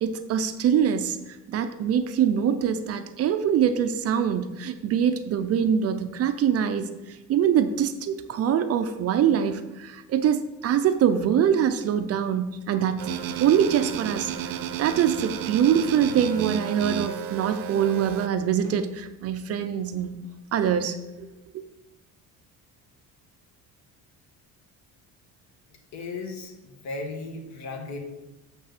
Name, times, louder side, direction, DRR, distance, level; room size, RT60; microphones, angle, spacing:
voice 1, 0.0-13.1 13.4-20.2 20.5-21.3 21.5-21.6, right 8 dB, 45° right, 9 dB, 0.5 m, -24 dB
sound 1, 13.0-18.3, right 9 dB, 75° right, 0.8 m, -32 dB
voice 2, 25.9-26.5 26.8-28.0, left 3 dB, 50° left, 3 dB, 1.6 m, -35 dB
6.6 x 5.9 x 6.5 m, 1.0 s
cardioid pair, 160°, 34 cm